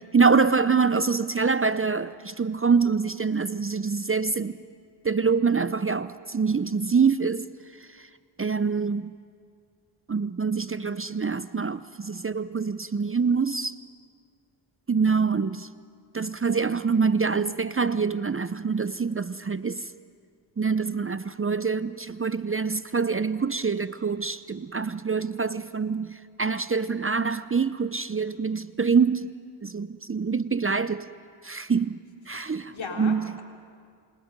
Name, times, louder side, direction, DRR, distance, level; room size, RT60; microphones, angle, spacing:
voice 1, 0.0-4.6 5.0-7.4 7.9-8.1 8.4-9.1 10.1-13.8 14.9-15.7 16.1-19.9 20.6-29.3 29.6-31.1 31.4-32.0 32.3-32.7 33.0-33.3, right 5 dB, 25° right, 0.6 m, -25 dB
voice 2, 32.3-33.4, left 4 dB, 65° left, 3.7 m, -38 dB
27.5 x 27.5 x 5.3 m
cardioid pair, 45°, 49 cm